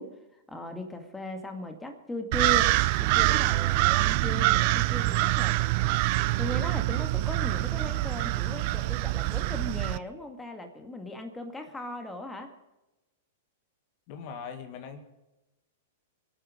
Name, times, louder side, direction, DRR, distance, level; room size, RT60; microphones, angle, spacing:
voice 1, 0.0-2.7 3.0-6.0 6.4-12.5, equal, 10° left, 5 dB, 2.0 m, -38 dB
sound 1, 2.3-10.0, right 19 dB, 50° right, 0.6 m, -25 dB
voice 2, 14.1-15.0, left 6 dB, 45° left, 7 dB, 2.0 m, -40 dB
24.5 x 9.1 x 5.2 m, 0.99 s
hypercardioid pair, 105°, 0 cm